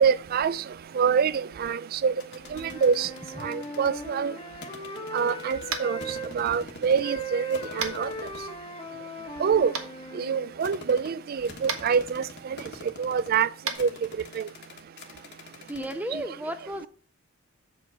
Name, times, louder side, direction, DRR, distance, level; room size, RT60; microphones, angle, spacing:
voice 1, 0.0-0.6 0.9-2.1 2.5-3.1 3.4-4.3 5.1-6.0 6.3-8.1 9.4-9.7 10.1-12.6 13.0-13.5 13.8-13.9 14.3-14.5, right 6 dB, 45° right, 0.3 m, -25 dB
sound 1, 2.2-3.9 4.6-7.2 7.5-8.5 9.2-16.0, left 3 dB, 50° left, 1.3 m, -45 dB
Wind instrument woodwind instrument, 2.4-6.3 7.0-10.5, right 1 dB, 30° left, 1.1 m, -38 dB
Tap, 5.7-5.9 7.8-8.0 9.7-9.8 11.6-11.8 13.6-13.8, right 6 dB, 85° right, 1.2 m, -30 dB
voice 2, 15.6-16.9, equal, 5° right, 0.7 m, -35 dB
7.6 x 5.0 x 4.7 m
head